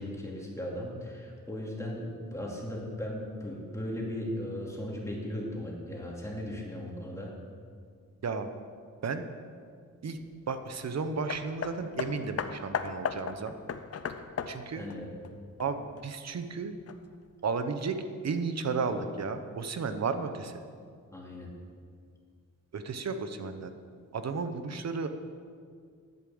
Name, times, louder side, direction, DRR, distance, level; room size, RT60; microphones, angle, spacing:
voice 1, 0.0-7.3 14.7-15.1 21.1-21.5, left 1 dB, 10° left, -3 dB, 2.6 m, -37 dB
voice 2, 10.5-13.5 14.5-14.9 15.6-16.7 17.4-17.9 18.2-20.5 22.7-23.7 24.1-25.1, right 4 dB, 55° right, 8 dB, 0.9 m, -33 dB
Hammer, 11.3-16.0 16.9-17.0, left 6 dB, 50° left, 0.6 m, -36 dB
11.0 x 8.7 x 7.8 m, 2.1 s
wide cardioid pair, 135°, 32 cm